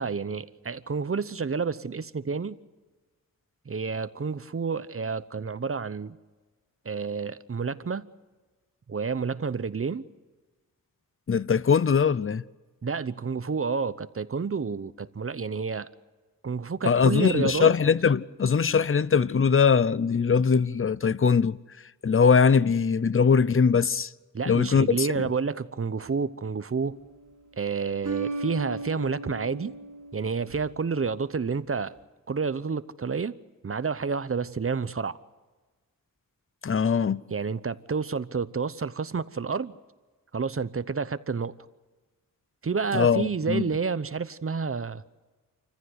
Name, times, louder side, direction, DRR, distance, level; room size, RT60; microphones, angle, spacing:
voice 1, 0.0-2.6 3.7-6.2 6.8-8.1 8.9-10.1 12.8-15.9 16.4-17.7 24.3-27.0 27.6-29.7 30.1-31.9 32.3-33.3 33.6-35.2 37.3-39.7 40.3-41.5 42.6-45.0, right 5 dB, 40° right, 0.8 m, -29 dB
voice 2, 11.3-12.4 16.8-21.6 22.0-24.1 24.5-25.3 36.6-37.2 42.9-43.6, left 6 dB, 40° left, 0.6 m, -21 dB
sound 1, 26.8-27.3 28.0-30.9, right 3 dB, 60° right, 4.6 m, -36 dB
27.5 x 15.0 x 8.0 m
wide cardioid pair, 90°, 34 cm